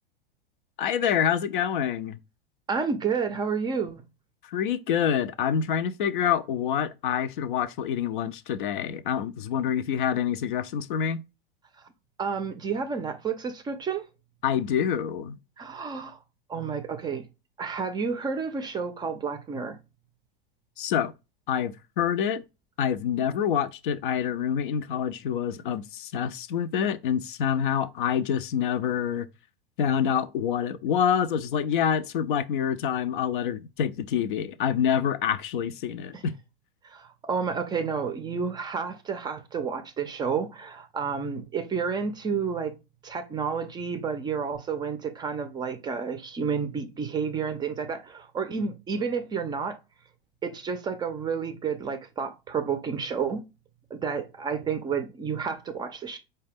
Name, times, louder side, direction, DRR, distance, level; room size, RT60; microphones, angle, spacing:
voice 1, 0.8-2.2 4.4-11.2 14.4-15.4 20.8-21.1 21.5-22.4 22.8-29.3 29.8-36.3, left 8 dB, 60° left, 0.4 m, -27 dB
voice 2, 2.7-4.0 12.2-14.0 15.6-16.2 16.5-17.3 17.6-19.8 36.1-36.2 36.8-42.8 43.0-49.8 50.4-53.4 53.9-56.2, right 6 dB, 15° right, 0.4 m, -30 dB
4.7 x 2.2 x 3.3 m
figure-of-eight pair, 90°, 29 cm